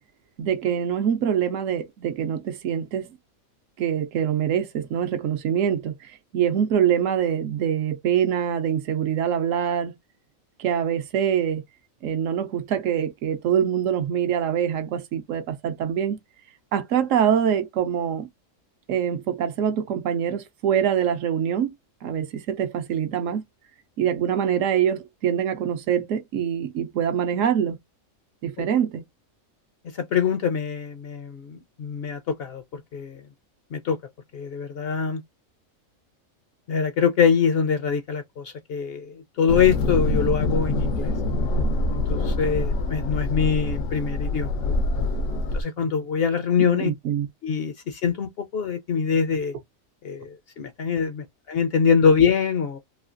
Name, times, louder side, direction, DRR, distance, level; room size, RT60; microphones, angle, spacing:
voice 1, 0.4-3.1 3.8-10.0 10.6-11.6 12.0-16.2 16.7-18.3 18.9-21.7 22.0-23.4 24.0-27.8 28.4-29.0 46.6-47.3, right 9 dB, 75° right, 0.9 m, -24 dB
voice 2, 29.8-33.2 33.7-34.0 34.3-35.2 36.7-41.1 42.1-44.6 45.5-46.9 47.4-49.5 50.0-52.8, left 6 dB, 65° left, 0.6 m, -24 dB
sound 1, 39.5-45.6, left 2 dB, 80° left, 1.0 m, -25 dB
3.1 x 2.7 x 2.5 m
omnidirectional pair, 1.4 m